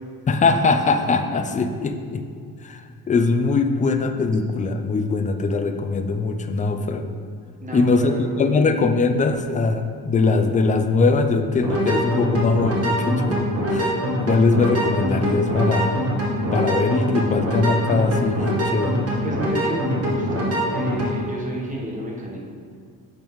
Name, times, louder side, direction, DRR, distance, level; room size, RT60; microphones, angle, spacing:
voice 1, 0.3-2.2 2.6-7.1 7.7-13.4 13.7-16.0 16.5-19.0, left 3 dB, 20° left, 7 dB, 0.3 m, -21 dB
voice 2, 7.6-8.5 19.2-22.5, right 1 dB, 20° right, -3 dB, 1.1 m, -31 dB
sound 1, 11.5-21.1, equal, 40° right, 1.5 m, -24 dB
7.1 x 5.2 x 3.1 m, 2.1 s
cardioid pair, 120°, 37 cm